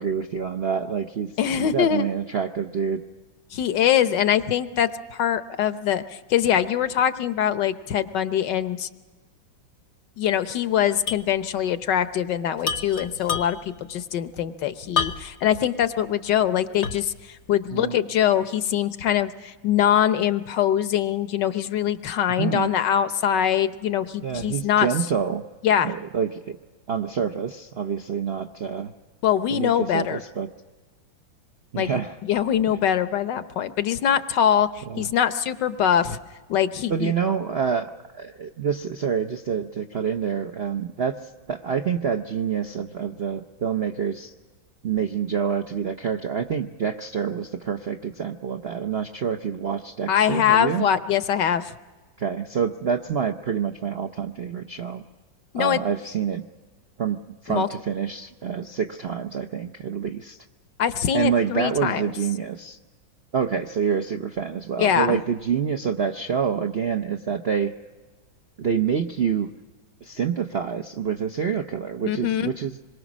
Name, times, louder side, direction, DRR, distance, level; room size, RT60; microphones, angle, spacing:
voice 1, 0.0-1.3 1.6-3.0 17.7-18.0 22.4-22.7 24.2-25.4 25.8-26.6 26.9-28.9 29.5-30.5 31.7-32.1 34.9-35.1 36.9-41.2 41.5-44.3 44.8-50.9 52.2-55.0 55.6-56.4 57.0-60.4 61.1-62.8 63.3-67.7 68.6-69.5 70.0-72.8, right 7 dB, 55° right, 6 dB, 0.6 m, -27 dB
voice 2, 1.4-2.1 3.5-8.9 10.2-24.9 25.6-25.9 29.2-30.2 31.8-36.2 36.5-37.1 50.1-51.7 55.5-55.8 57.5-57.7 60.8-62.1 64.8-65.2 72.1-72.5, left 9 dB, 70° left, 11 dB, 1.4 m, -23 dB
sound 1, 11.1-11.3 11.6-11.7 12.6-13.8 15.0-15.5 16.0-16.1 16.8-17.2, left 6 dB, 45° left, 1.0 m, -28 dB
26.0 x 22.5 x 6.1 m, 1.3 s
omnidirectional pair, 2.1 m